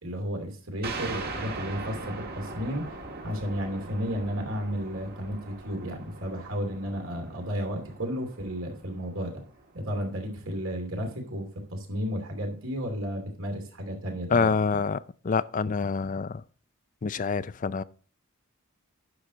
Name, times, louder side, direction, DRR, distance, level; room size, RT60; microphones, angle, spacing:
voice 1, 0.0-3.0 3.2-9.4 9.7-14.5, equal, 65° right, 2.7 m, -33 dB
sound 1, 0.8-10.0, right 3 dB, 45° right, 1.6 m, -40 dB
voice 2, 14.3-15.0 15.2-16.4 17.0-17.8, left 5 dB, 35° left, 0.4 m, -26 dB
9.9 x 6.4 x 4.0 m
head